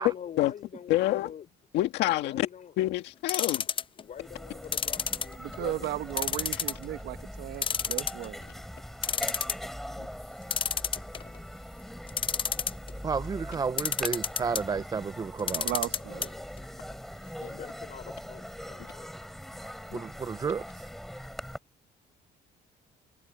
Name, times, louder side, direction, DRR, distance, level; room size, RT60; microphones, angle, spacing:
voice 1, 0.0-1.5 2.2-2.7 3.5-3.6 4.0-5.9 10.6-10.7 17.5-19.1, left 8 dB, 50° left, 3.6 m, -44 dB
voice 2, 0.9-1.3 1.7-2.5 2.8-3.6 10.0-10.1 17.4-17.6 19.9-20.0, left 15 dB, 85° left, 1.9 m, -27 dB
sound 1, 3.3-4.0 4.7-5.7 6.2-6.8 7.2-7.3 7.6-8.4 8.8-8.9 9.0-9.7 10.5-11.4 12.1-12.9 13.8-14.6 15.4-16.3 16.6-16.7 16.9-17.0, left 7 dB, 30° left, 0.5 m, -29 dB
sound 2, 3.8-3.9 4.1-21.6, equal, ahead, 7.4 m, -42 dB
voice 3, 5.4-8.4 15.5-16.3, right 14 dB, 75° right, 1.2 m, -35 dB
voice 4, 13.0-15.7 19.6-20.9, right 5 dB, 20° right, 0.5 m, -32 dB
cardioid pair, 110°, 17 cm